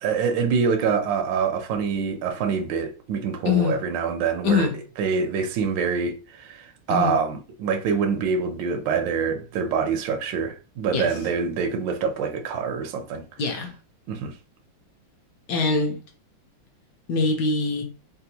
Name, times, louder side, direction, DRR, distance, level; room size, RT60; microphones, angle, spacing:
voice 1, 0.0-4.7 5.0-13.2 13.5-13.6 14.1-14.3, right 5 dB, 75° right, 1.2 m, -25 dB
voice 2, 3.4-3.8 4.4-4.7 6.9-7.2 10.9-11.1 13.4-13.7 15.5-16.0 17.1-17.8, left 4 dB, 70° left, 1.1 m, -23 dB
3.4 x 2.4 x 2.8 m
omnidirectional pair, 2.2 m